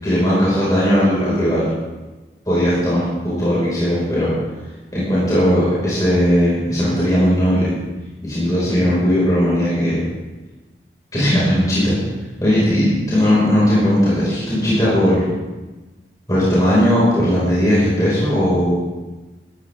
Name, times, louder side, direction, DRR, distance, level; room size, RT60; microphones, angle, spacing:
voice 1, 0.0-1.7 2.5-4.3 4.9-7.7 8.2-10.1 11.1-11.9 12.4-15.2 16.3-18.8, equal, 20° left, -9 dB, 5.5 m, -17 dB
18.0 x 13.5 x 3.7 m, 1.2 s
head